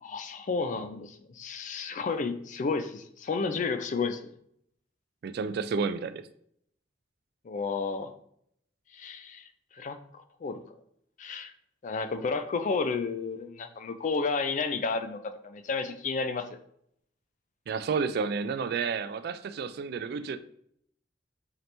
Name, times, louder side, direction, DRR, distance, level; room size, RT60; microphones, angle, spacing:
voice 1, 0.0-4.3 7.4-8.1 8.9-10.6 11.2-11.5 11.8-16.5, left 4 dB, 45° left, 9 dB, 0.4 m, -32 dB
voice 2, 5.2-6.3 17.7-20.4, right 5 dB, 60° right, 11 dB, 0.3 m, -31 dB
4.0 x 2.9 x 3.2 m, 0.69 s
head